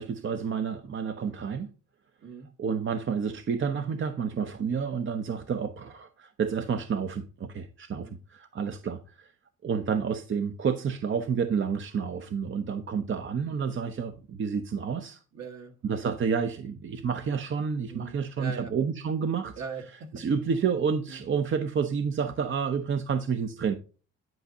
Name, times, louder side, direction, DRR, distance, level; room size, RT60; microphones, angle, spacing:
voice 1, 0.0-1.7 2.6-9.3 9.6-15.2 15.8-19.5 20.1-23.7, right 6 dB, 40° right, 0.7 m, -29 dB
voice 2, 15.3-15.7 16.0-16.1 17.9-18.7 19.6-20.2 21.1-21.2, right 5 dB, 60° right, 1.7 m, -41 dB
10.5 x 5.2 x 2.8 m
cardioid pair, 90°, 30 cm